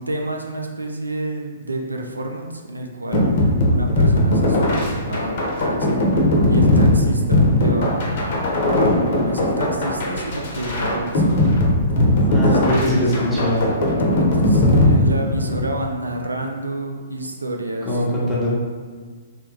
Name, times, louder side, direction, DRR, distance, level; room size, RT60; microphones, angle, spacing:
voice 1, 0.0-6.0 6.5-11.6 12.4-13.1 14.2-18.5, right 1 dB, 90° right, 2 dB, 0.3 m, -29 dB
sound 1, 3.1-15.7, left 1 dB, 50° left, 0.7 m, -18 dB
voice 2, 12.3-13.7 17.9-18.6, left 1 dB, 10° left, -8 dB, 0.9 m, -21 dB
3.0 x 2.2 x 3.2 m, 1.5 s
figure-of-eight pair, 120°, 0 cm